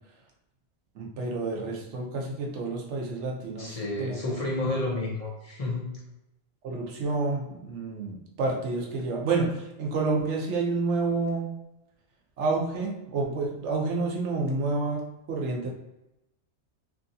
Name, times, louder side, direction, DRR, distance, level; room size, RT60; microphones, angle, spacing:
voice 1, 1.0-4.2 4.6-4.7 6.6-11.6 12.4-15.7, right 3 dB, 90° right, 0 dB, 1.0 m, -29 dB
voice 2, 3.6-6.0, left 2 dB, 40° left, -3 dB, 0.7 m, -31 dB
2.9 x 2.6 x 2.6 m, 0.92 s
omnidirectional pair, 1.2 m